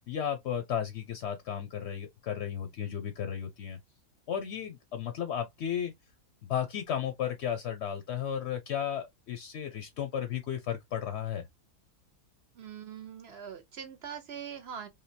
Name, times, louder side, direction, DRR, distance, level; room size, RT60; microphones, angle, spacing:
voice 1, 0.1-3.8 4.3-5.9 6.4-11.4, left 9 dB, 60° left, 0.7 m, -34 dB
voice 2, 12.5-14.9, right 8 dB, 60° right, 0.7 m, -42 dB
3.4 x 2.7 x 2.6 m
omnidirectional pair, 1.6 m